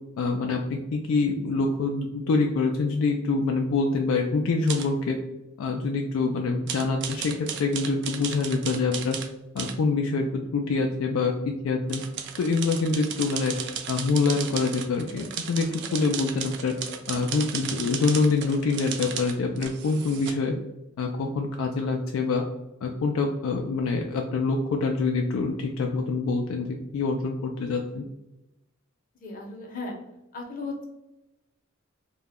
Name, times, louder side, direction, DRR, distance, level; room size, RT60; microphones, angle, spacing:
voice 1, 0.2-5.2 5.6-9.2 9.5-12.0 12.4-13.5 13.9-16.7 17.1-20.6 21.0-22.4 22.8-28.0, left 4 dB, 85° left, 2 dB, 0.3 m, -25 dB
sound 1, 4.7-4.9 6.7-9.3 9.6-9.8 11.9-20.3, right 8 dB, 60° right, 0.3 m, -35 dB
voice 2, 29.2-30.0 30.3-30.7, left 3 dB, 40° left, 1 dB, 0.6 m, -35 dB
2.2 x 2.0 x 3.4 m, 0.95 s
head